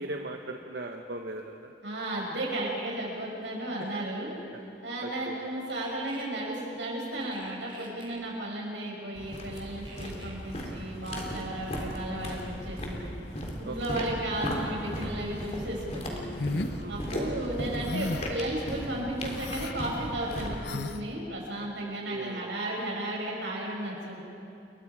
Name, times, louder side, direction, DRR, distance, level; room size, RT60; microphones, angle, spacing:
voice 1, 0.0-1.7 5.0-5.4 11.3-11.6 13.6-14.0 16.7-17.0 21.8-22.5, right 2 dB, 65° right, 2 dB, 1.2 m, -39 dB
voice 2, 1.8-4.3 4.8-13.1 13.6-16.3 16.9-24.2, right 1 dB, 85° right, -2 dB, 6.8 m, -34 dB
sound 1, 5.7-6.2 7.2-8.2 9.9-10.4, right 3 dB, 30° right, 3.4 m, -49 dB
sound 2, 9.1-20.6, equal, 40° left, 3.2 m, -36 dB
sound 3, 16.4-16.8 17.8-18.4 19.3-19.7 20.6-21.0, left 3 dB, 65° left, 0.8 m, -33 dB
29.5 x 22.5 x 4.9 m, 2.6 s
head